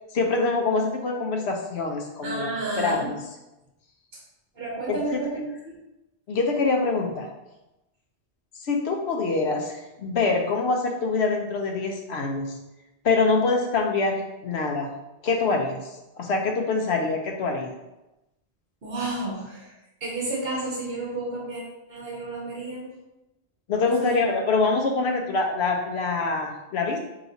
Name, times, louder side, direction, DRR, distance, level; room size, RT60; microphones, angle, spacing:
voice 1, 0.1-2.5 2.8-3.2 4.9-5.2 6.3-7.3 8.6-12.6 13.0-14.9 15.2-15.9 16.2-17.7 23.7-27.0, left 3 dB, 70° left, 1 dB, 0.9 m, -25 dB
voice 2, 2.2-3.1 4.5-5.8 18.8-19.7 20.0-21.6 21.9-22.9 23.8-24.2, right 2 dB, 55° right, -4 dB, 1.1 m, -31 dB
5.7 x 2.9 x 2.7 m, 0.96 s
omnidirectional pair, 1.2 m